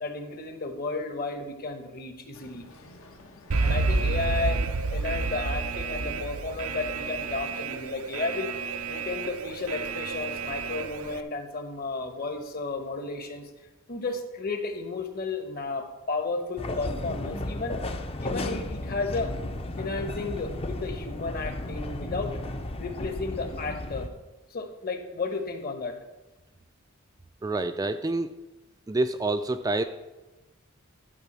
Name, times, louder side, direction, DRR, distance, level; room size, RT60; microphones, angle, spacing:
voice 1, 0.0-2.6 3.6-4.6 4.9-8.5 8.9-13.5 13.9-17.8 18.2-19.3 19.8-22.3 22.8-24.1 24.5-25.9, left 3 dB, 45° left, 6 dB, 1.2 m, -33 dB
Boat Water vehicle, 2.3-7.7, left 2 dB, 80° left, 1.5 m, -50 dB
Alarm, 3.5-11.2, right 3 dB, 90° right, 0.6 m, -30 dB
sound 1, 16.6-24.1, left 1 dB, 25° left, 0.6 m, -34 dB
voice 2, 27.4-28.3 28.9-29.8, right 2 dB, 15° right, 8 dB, 0.3 m, -27 dB
11.5 x 4.7 x 7.4 m, 1.1 s
head